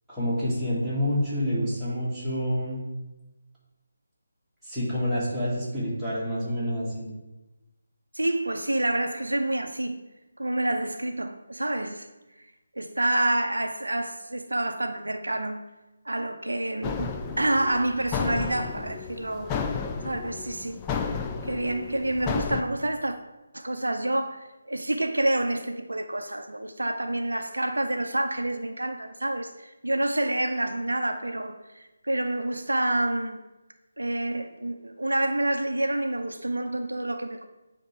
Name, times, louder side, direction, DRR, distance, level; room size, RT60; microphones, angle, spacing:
voice 1, 0.1-2.8 4.6-7.1, equal, ahead, 1.8 m, -28 dB
voice 2, 8.1-10.0 10.4-12.1 12.7-15.6 16.1-19.5 20.0-20.8 21.4-23.2 23.5-33.4 34.0-37.5, right 1 dB, 75° right, 0.5 m, -28 dB
sound 1, 16.8-22.6, left 6 dB, 15° left, 0.3 m, -32 dB
8.6 x 2.9 x 4.6 m
figure-of-eight pair, 150°, 0 cm